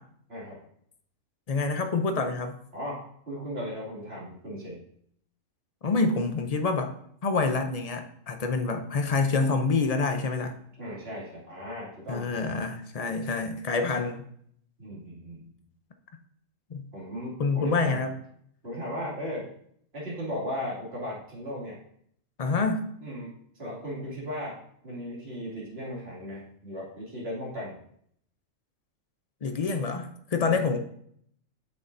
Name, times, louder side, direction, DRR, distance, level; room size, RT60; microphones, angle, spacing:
voice 1, 0.3-0.6 2.7-3.0 3.3-4.8 10.8-12.5 14.8-15.5 16.9-18.0 18.6-19.5 19.9-21.8 23.0-24.6 24.8-27.8 30.4-30.6, equal, 50° right, -6 dB, 2.7 m, -36 dB
voice 2, 1.5-2.6 5.8-6.9 7.2-10.5 12.1-14.3 16.7-16.8 17.4-18.1 22.4-22.9 29.4-30.8, left 4 dB, 45° left, 6 dB, 0.5 m, -27 dB
8.4 x 6.6 x 2.6 m, 0.67 s
omnidirectional pair, 1.3 m